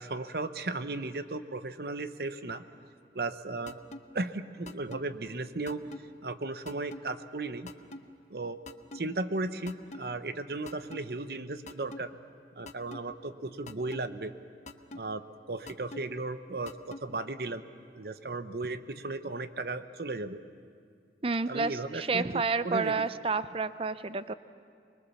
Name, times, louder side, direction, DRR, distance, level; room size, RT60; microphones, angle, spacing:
voice 1, 0.0-2.6 3.1-3.8 4.1-5.8 6.2-7.7 8.3-8.6 8.9-12.1 12.6-14.3 14.9-15.2 15.5-17.6 17.9-20.4 21.5-22.9, right 2 dB, 60° right, 11 dB, 0.8 m, -35 dB
sound 1, 3.7-4.0 4.7-5.0 5.7-6.0 6.7-7.0 7.7-8.0 8.7-9.0 9.7-10.0 10.7-11.0 11.7-12.0 12.7-13.0 13.7-14.0 14.7-15.0 15.7-16.0 16.7-17.0, left 2 dB, 40° left, 0.8 m, -43 dB
voice 2, 21.2-24.3, right 4 dB, 30° right, 14 dB, 0.5 m, -30 dB
24.5 x 21.5 x 7.0 m, 2.3 s
head